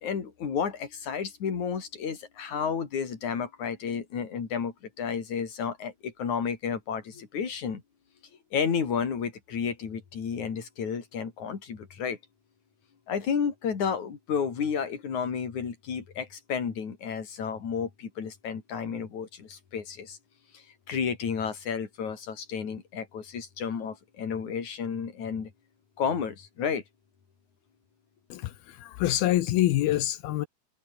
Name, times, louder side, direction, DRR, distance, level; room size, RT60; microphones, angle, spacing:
voice 1, 0.0-7.8 8.5-12.2 13.1-20.2 20.5-25.5 26.0-26.8, left 6 dB, 50° left, 4.7 m, -32 dB
voice 2, 28.3-30.5, left 14 dB, 80° left, 2.9 m, -26 dB
omnidirectional pair, 4.4 m